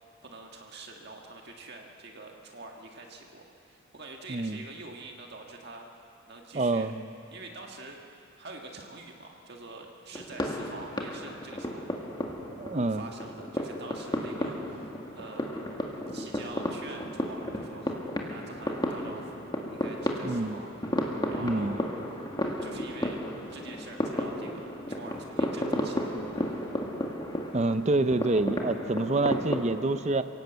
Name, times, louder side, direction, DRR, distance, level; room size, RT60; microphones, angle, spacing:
voice 1, 0.2-5.9 6.3-6.9 7.3-8.0 8.4-12.0 12.9-15.5 16.1-18.0 18.3-21.9 22.6-23.2 23.5-26.6, right 3 dB, 50° right, 1 dB, 1.7 m, -46 dB
voice 2, 6.5-7.1 12.6-13.0 20.2-20.6 21.4-21.8 27.5-30.3, right 2 dB, 30° right, 11 dB, 0.5 m, -27 dB
sound 1, 10.1-29.6, equal, 20° left, 2.0 m, -33 dB
27.5 x 17.5 x 8.1 m, 2.9 s
head